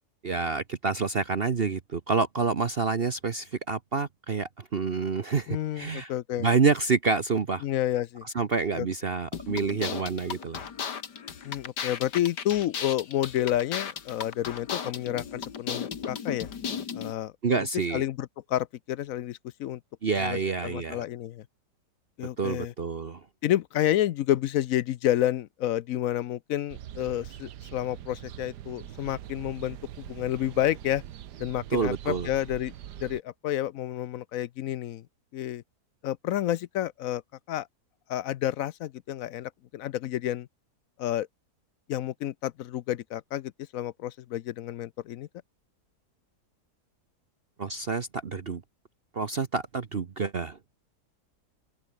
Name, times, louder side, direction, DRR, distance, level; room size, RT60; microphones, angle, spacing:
voice 1, 0.2-6.1 6.4-7.6 8.2-10.6 17.4-18.0 20.0-21.0 22.4-23.2 31.7-32.3 47.6-48.6 49.1-50.6, right 4 dB, 40° right, 1.1 m, -28 dB
voice 2, 5.5-6.5 7.6-8.2 8.8-8.9 11.4-16.5 16.9-17.3 17.9-19.8 20.2-20.4 20.6-21.4 22.2-22.7 23.4-31.0 31.4-32.7 33.0-35.0 35.3-35.6 36.0-37.2 37.5-37.7 38.1-40.5 41.0-41.3 41.9-45.3, left 12 dB, 65° left, 0.9 m, -30 dB
sound 1, 9.3-17.1, left 7 dB, 90° left, 2.4 m, -36 dB
sound 2, 26.7-33.2, right 11 dB, 90° right, 1.5 m, -43 dB
open air
omnidirectional pair, 1.7 m